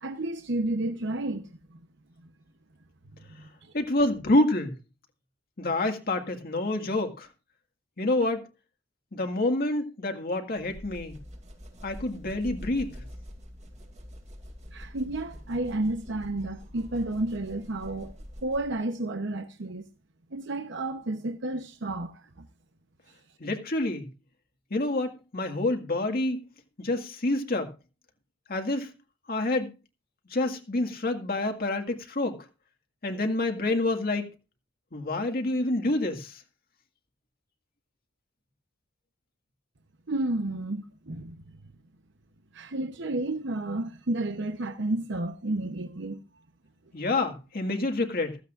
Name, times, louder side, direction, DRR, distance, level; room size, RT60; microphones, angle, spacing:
voice 1, 0.0-1.8 3.6-3.7 14.7-19.9 20.3-22.5 40.1-41.4 42.5-46.2, right 2 dB, 60° right, 0.9 m, -31 dB
voice 2, 3.7-4.7 5.6-7.3 8.0-8.4 9.1-11.2 11.8-13.0 23.4-24.1 24.7-26.4 26.8-27.7 28.5-28.9 29.3-29.7 30.3-32.5 33.0-34.3 34.9-36.4 46.9-48.4, left 2 dB, 50° left, 1.9 m, -27 dB
sound 1, 10.6-18.8, equal, 35° right, 2.6 m, -45 dB
15.5 x 15.0 x 2.5 m
head